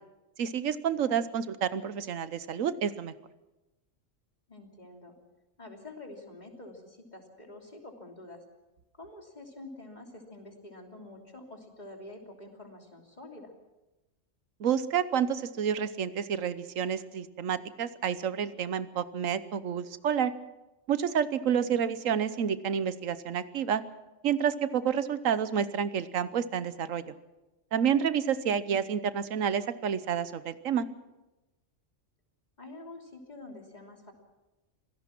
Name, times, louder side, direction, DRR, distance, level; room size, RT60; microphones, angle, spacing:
voice 1, 0.4-3.1 14.6-20.3 20.9-23.8 24.2-27.1 27.7-30.9, right 8 dB, 90° right, 14 dB, 1.3 m, -29 dB
voice 2, 4.5-5.2 5.6-8.4 9.0-13.5 21.5-21.9 28.4-28.9 32.6-34.1, left 2 dB, 35° left, 2 dB, 3.2 m, -47 dB
25.5 x 17.5 x 6.0 m, 1.0 s
omnidirectional pair, 1.3 m